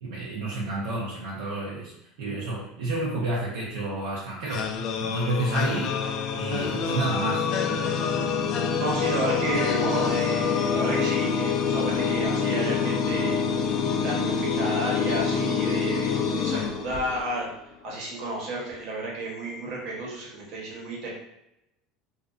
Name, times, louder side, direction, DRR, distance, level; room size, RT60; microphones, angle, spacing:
voice 1, 0.0-1.9 2.2-5.9 6.3-7.5, right 2 dB, 85° right, -5 dB, 0.6 m, -30 dB
sound 1, 4.5-17.4, left 6 dB, 55° left, 0.3 m, -26 dB
voice 2, 8.8-13.8 14.0-17.5 17.8-21.1, right 1 dB, 60° right, -3 dB, 1.0 m, -32 dB
2.5 x 2.4 x 2.4 m, 0.85 s
supercardioid pair, 120°, 0 cm